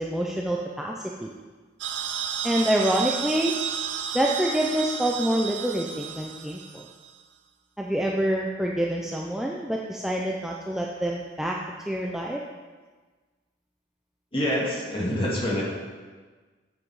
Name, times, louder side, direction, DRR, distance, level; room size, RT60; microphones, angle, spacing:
voice 1, 0.0-1.3 2.4-3.5 4.1-6.8 7.8-11.6 11.9-12.4, right 1 dB, 5° right, -2 dB, 0.4 m, -26 dB
sound 1, 1.8-7.1, right 8 dB, 85° right, 0.6 m, -32 dB
voice 2, 14.3-15.6, equal, 30° left, -5 dB, 2.0 m, -26 dB
7.7 x 7.5 x 4.8 m, 1.4 s
head